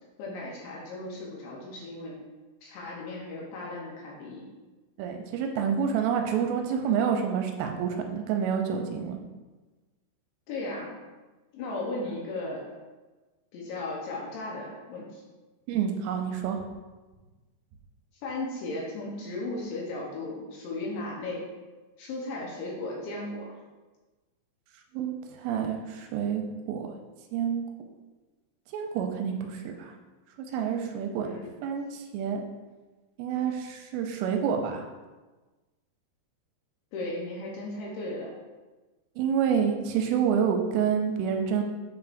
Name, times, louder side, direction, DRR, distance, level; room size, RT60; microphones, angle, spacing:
voice 1, 0.2-2.2 2.6-4.4 10.5-11.0 11.5-12.6 13.5-15.2 18.2-21.5 22.0-23.5 31.2-31.5 36.9-38.3, left 2 dB, 75° left, -3 dB, 2.9 m, -36 dB
voice 2, 5.0-9.2 15.7-16.6 24.9-26.4 26.7-26.9 27.3-27.6 28.7-29.9 30.5-31.3 31.6-32.4 33.2-34.8 39.2-41.6, right 7 dB, 85° right, 3 dB, 3.1 m, -28 dB
8.6 x 4.7 x 2.6 m, 1.2 s
omnidirectional pair, 5.7 m